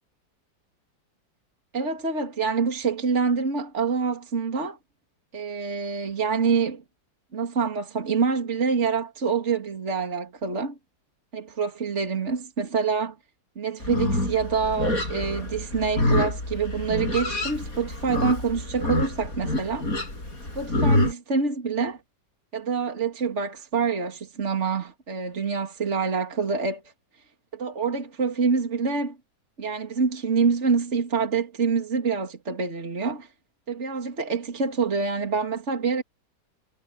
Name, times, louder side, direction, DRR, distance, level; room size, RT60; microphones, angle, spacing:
voice 1, 1.7-4.8 5.3-6.8 7.3-10.8 11.3-13.2 13.6-19.9 20.5-22.0 22.5-26.8 27.5-29.2 29.6-33.3 33.7-36.0, right 5 dB, 40° right, 2.9 m, -26 dB
Livestock farm animals working animals, 13.8-21.1, left 1 dB, 50° left, 8.1 m, -27 dB
omnidirectional pair, 2.0 m